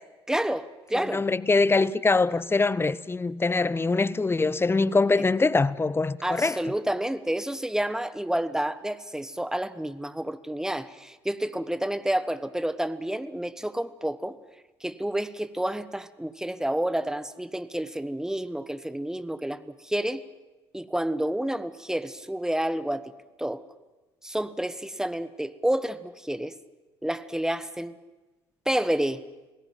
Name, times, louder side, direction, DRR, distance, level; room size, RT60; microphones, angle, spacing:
voice 1, 0.3-1.2 6.2-14.4 14.8-20.2 20.7-23.0 23.4-23.6 24.2-26.6 27.0-28.0 28.6-29.2, right 1 dB, 5° right, 1.2 m, -29 dB
voice 2, 0.9-6.6, left 3 dB, 20° left, 0.9 m, -23 dB
26.0 x 17.5 x 9.2 m
figure-of-eight pair, 55°, 13 cm